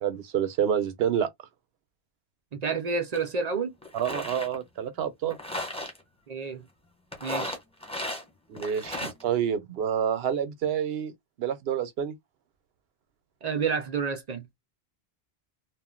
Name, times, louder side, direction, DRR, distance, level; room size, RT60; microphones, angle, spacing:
voice 1, 0.0-1.3 3.9-5.4 8.5-11.1 11.4-12.1, right 8 dB, 75° right, 0.9 m, -28 dB
voice 2, 2.5-3.7 6.3-6.7 7.2-7.6 13.4-14.5, right 5 dB, 50° right, 0.5 m, -29 dB
sound 1, 3.1-3.2 3.8-4.5 5.3-6.0 7.1-8.2 8.5-9.2, left 1 dB, 5° left, 1.1 m, -35 dB
2.4 x 2.1 x 3.6 m
omnidirectional pair, 1.1 m